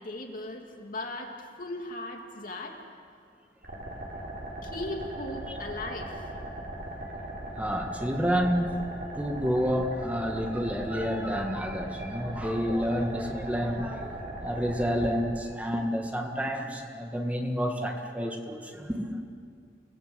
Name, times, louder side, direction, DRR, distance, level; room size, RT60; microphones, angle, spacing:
voice 1, 0.0-2.8 4.6-6.3, left 2 dB, 50° left, 2 dB, 2.9 m, -38 dB
sound 1, 3.6-15.2, right 1 dB, 65° right, 6.4 m, -39 dB
voice 2, 7.5-8.8 9.2-19.2, equal, 10° right, 2 dB, 1.8 m, -29 dB
29.5 x 18.5 x 8.2 m, 2.2 s
head